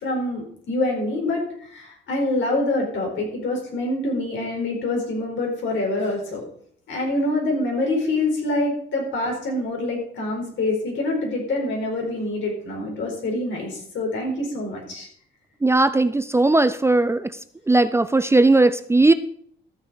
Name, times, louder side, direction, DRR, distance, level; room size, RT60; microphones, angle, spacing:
voice 1, 0.0-6.4 6.9-15.1, left 2 dB, 75° left, 0 dB, 4.5 m, -25 dB
voice 2, 15.6-17.3 17.7-19.1, right 2 dB, 15° right, 12 dB, 0.5 m, -17 dB
13.5 x 6.9 x 5.1 m, 0.62 s
cardioid pair, 90°, 20 cm